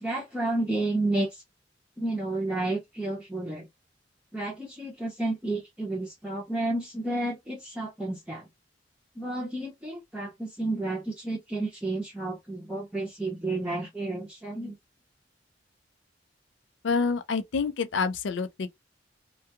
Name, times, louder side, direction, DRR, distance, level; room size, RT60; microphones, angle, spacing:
voice 1, 0.0-1.4 2.0-3.7 4.3-8.5 9.2-14.8, right 2 dB, 5° right, 0.6 m, -31 dB
voice 2, 16.8-18.7, left 4 dB, 75° left, 0.4 m, -27 dB
2.3 x 2.2 x 2.8 m
head